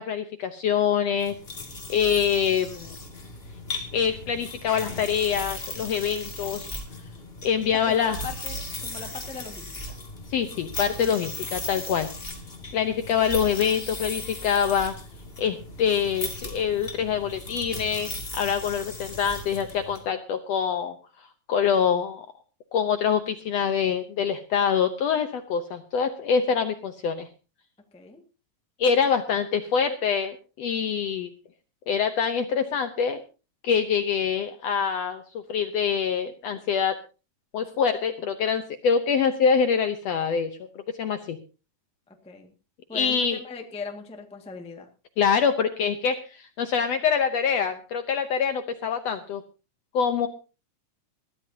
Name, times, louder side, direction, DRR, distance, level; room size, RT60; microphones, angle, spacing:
voice 1, 0.0-1.3 1.9-3.0 3.9-6.8 7.4-8.2 10.3-12.1 12.7-14.9 15.4-20.9 21.5-22.3 22.7-27.3 28.8-31.3 31.9-33.2 33.6-35.2 35.5-37.0 37.5-40.5 41.0-41.4 42.9-43.4 45.2-49.4 49.9-50.3, left 7 dB, 70° left, 8 dB, 1.6 m, -25 dB
sound 1, 1.2-20.0, left 2 dB, 20° left, 2.1 m, -37 dB
voice 2, 7.8-10.0 27.9-28.2 42.1-42.5 42.9-44.9, left 4 dB, 5° left, 3 dB, 0.7 m, -39 dB
21.5 x 14.0 x 2.8 m, 0.32 s
omnidirectional pair, 3.9 m